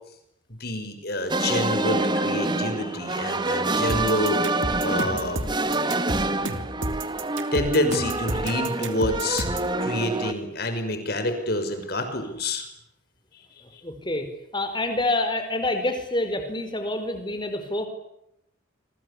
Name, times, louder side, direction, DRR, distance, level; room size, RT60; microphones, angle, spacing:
voice 1, 0.6-4.4 4.8-5.4 7.5-9.5 9.8-12.7 13.6-13.8, left 1 dB, 50° left, 7 dB, 6.0 m, -27 dB
sound 1, 1.3-10.3, right 2 dB, 20° right, 1.7 m, -27 dB
sound 2, 3.9-9.7, right 1 dB, 75° right, 3.0 m, -31 dB
voice 2, 13.8-14.3 14.5-17.9, left 2 dB, 25° left, 7 dB, 4.8 m, -27 dB
28.0 x 24.5 x 8.6 m, 0.78 s
head